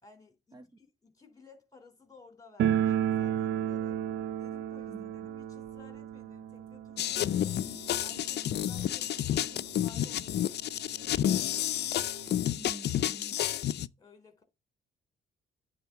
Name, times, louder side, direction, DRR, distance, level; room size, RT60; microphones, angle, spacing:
voice 1, 0.0-4.0 4.4-7.6 8.0-11.3 14.0-14.4, left 4 dB, 20° left, 3.4 m, -57 dB
sound 1, 2.6-9.3 9.6-9.7 9.9-10.0 10.8-10.9 11.2-12.3, right 10 dB, 80° right, 0.7 m, -33 dB
sound 2, 7.0-13.9, left 11 dB, 60° left, 0.5 m, -30 dB
voice 2, 12.6-13.4, right 3 dB, 20° right, 0.7 m, -47 dB
9.4 x 3.9 x 6.7 m
cardioid pair, 90°, 20 cm